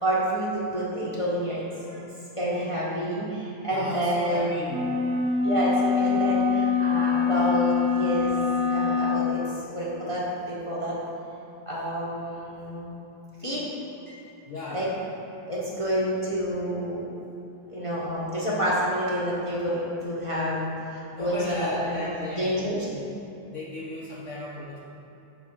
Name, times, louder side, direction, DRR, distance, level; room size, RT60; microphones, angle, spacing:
voice 1, 0.0-1.6 2.4-4.5 5.4-11.0 11.7-12.9 13.4-13.6 14.1-14.9 15.5-17.1 17.7-22.0 22.3-22.9, equal, 25° left, -7 dB, 0.7 m, -28 dB
voice 2, 1.8-2.1 3.7-4.8 7.1-7.2 14.5-14.9 21.1-22.6 22.9-23.0 23.5-24.8, left 2 dB, 65° left, -4 dB, 0.7 m, -36 dB
sound 1, 4.7-9.3, left 5 dB, 65° right, 0.9 m, -24 dB
5.5 x 4.9 x 6.1 m, 2.8 s
omnidirectional pair, 2.1 m